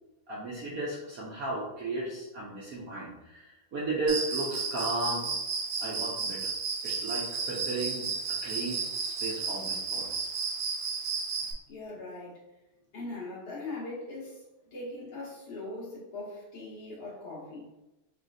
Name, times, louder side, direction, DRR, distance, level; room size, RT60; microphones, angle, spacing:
voice 1, 0.3-5.3 5.8-6.5 6.8-10.3, right 2 dB, 65° right, -5 dB, 0.9 m, -35 dB
Cricket, 4.1-11.5, right 5 dB, 90° right, 1.6 m, -33 dB
voice 2, 11.7-12.4 12.9-14.5 14.7-17.7, left 2 dB, 70° left, -7 dB, 2.3 m, -40 dB
5.1 x 3.0 x 2.6 m, 1.0 s
omnidirectional pair, 2.3 m